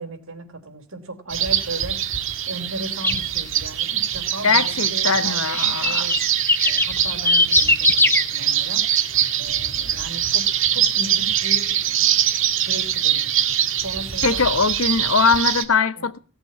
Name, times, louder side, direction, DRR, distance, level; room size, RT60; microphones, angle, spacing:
voice 1, 0.0-6.2 6.6-8.8 9.4-12.2 12.6-13.5 13.8-14.5 16.0-16.1, right 2 dB, 85° right, 3.8 m, -36 dB
sound 1, 1.3-15.6, right 10 dB, 65° right, 1.7 m, -23 dB
sound 2, 3.0-3.2 5.5-8.2, left 2 dB, 10° left, 0.9 m, -19 dB
voice 2, 4.4-6.0 14.2-16.2, left 5 dB, 85° left, 1.1 m, -21 dB
17.5 x 7.9 x 8.7 m
head